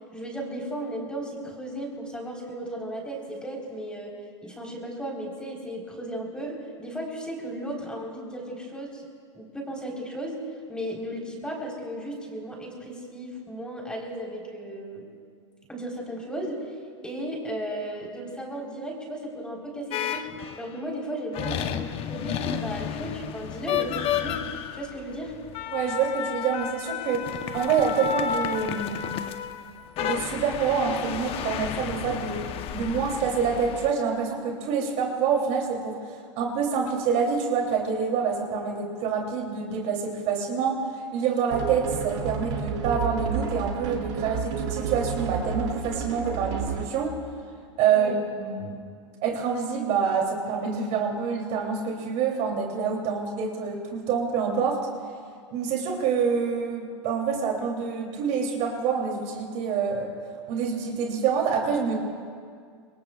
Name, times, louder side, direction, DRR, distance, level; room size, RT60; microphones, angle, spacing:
voice 1, 0.1-4.1 4.4-9.0 9.3-10.4 10.7-15.0 15.7-16.6 17.0-20.3 20.6-24.4 24.7-25.4 47.9-48.2, right 1 dB, 5° left, -1 dB, 4.0 m, -35 dB
sound 1, 19.9-20.7 21.3-33.9, left 9 dB, 35° left, 0.9 m, -32 dB
voice 2, 25.7-29.2 30.0-32.4 32.7-36.0 36.4-47.1 47.8-48.8 49.2-54.9 55.5-60.1 60.5-61.9, right 6 dB, 45° right, 1 dB, 3.0 m, -27 dB
sound 2, 41.5-47.0, right 7 dB, 70° right, 2.7 m, -31 dB
26.5 x 21.5 x 2.4 m, 2.1 s
hypercardioid pair, 110°, 16 cm